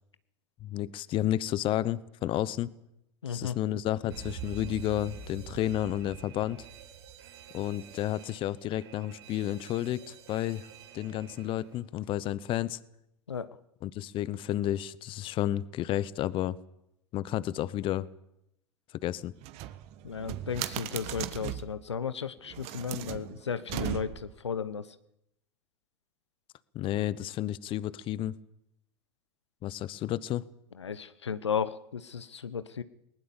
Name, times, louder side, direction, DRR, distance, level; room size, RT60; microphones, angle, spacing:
voice 1, 0.6-2.7 3.3-6.6 7.5-10.7 10.9-12.8 13.8-16.6 17.1-18.1 19.0-19.3 26.7-28.3 29.6-30.4, left 13 dB, 40° left, 19 dB, 0.9 m, -31 dB
voice 2, 3.2-3.6 13.3-13.5 20.0-24.9 30.8-32.8, left 7 dB, 85° left, 14 dB, 1.0 m, -34 dB
Alarm, 4.1-11.8, right 7 dB, 65° right, 4.8 m, -46 dB
sound 1, 19.4-21.8 22.5-24.4, right 14 dB, 45° right, 1.4 m, -37 dB
20.0 x 19.5 x 7.2 m, 0.80 s
hypercardioid pair, 95°, 14 cm